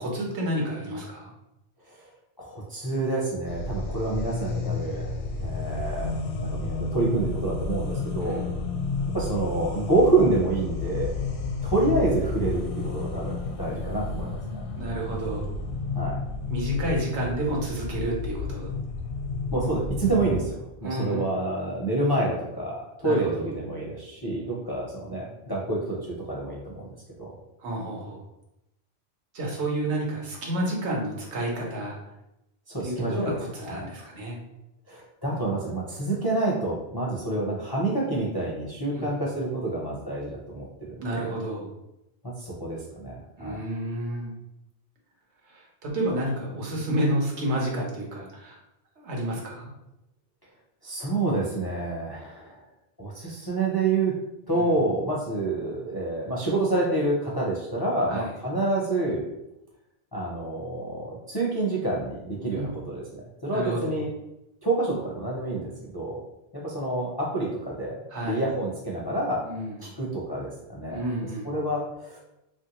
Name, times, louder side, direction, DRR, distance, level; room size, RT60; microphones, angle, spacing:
voice 1, 0.0-1.3 8.2-8.5 14.8-15.5 16.5-18.7 20.8-21.3 23.0-23.4 27.6-28.2 29.3-32.0 32.8-34.4 38.9-39.2 41.0-41.7 43.4-44.3 45.5-48.6 49.0-49.7 54.5-54.7 58.1-58.3 62.5-62.7 63.5-64.0 68.1-68.4 69.5-69.8 70.9-71.5, right 1 dB, 80° right, -2 dB, 1.1 m, -30 dB
voice 2, 2.4-8.4 9.1-11.1 11.6-14.6 16.0-16.2 19.5-26.9 27.2-27.3 32.7-33.4 33.6-33.9 34.9-41.4 42.4-43.6 50.8-52.6 53.0-54.1 54.5-59.2 60.1-64.1 64.6-66.2 66.5-69.4 69.8-71.0 71.4-72.2, right 2 dB, 35° left, -4 dB, 0.4 m, -28 dB
sound 1, 3.4-20.5, left 4 dB, 80° left, 0.8 m, -31 dB
3.1 x 2.5 x 2.9 m, 0.87 s
omnidirectional pair, 1.1 m